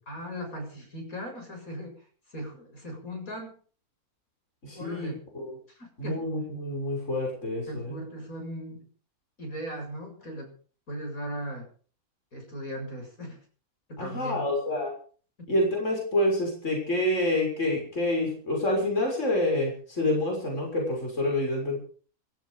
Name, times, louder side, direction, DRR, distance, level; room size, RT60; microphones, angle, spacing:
voice 1, 0.1-2.0 2.3-3.6 4.7-5.2 5.7-6.3 7.7-8.9 9.4-10.5 10.9-11.7 12.3-13.4 13.9-14.5, equal, 70° left, 3 dB, 7.6 m, -38 dB
voice 2, 4.6-5.6 6.0-8.0 14.0-14.9 15.5-21.8, left 1 dB, 55° left, 0 dB, 6.9 m, -27 dB
16.0 x 15.5 x 5.2 m, 0.42 s
omnidirectional pair, 1.5 m